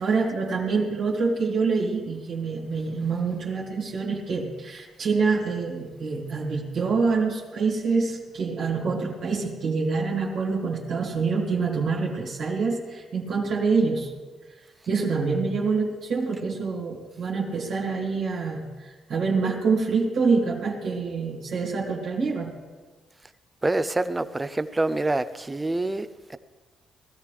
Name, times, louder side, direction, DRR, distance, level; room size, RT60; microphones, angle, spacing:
voice 1, 0.0-14.1 14.9-22.6, right 4 dB, 65° right, 2.3 m, -26 dB
voice 2, 23.6-26.4, right 2 dB, 20° right, 0.6 m, -26 dB
19.5 x 13.5 x 3.3 m
cardioid pair, 90°, 0 cm